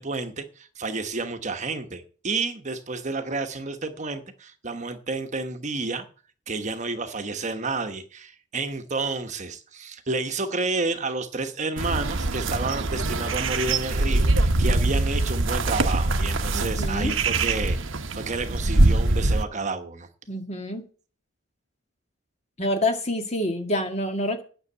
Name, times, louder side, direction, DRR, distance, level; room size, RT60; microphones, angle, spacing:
voice 1, 0.0-6.1 6.5-20.1, right 3 dB, 35° right, 1.2 m, -30 dB
sound 1, 11.8-19.4, right 2 dB, 80° right, 1.0 m, -23 dB
voice 2, 16.5-17.1 20.3-20.9 22.6-24.4, left 1 dB, 35° left, 1.9 m, -27 dB
9.7 x 6.6 x 8.4 m
head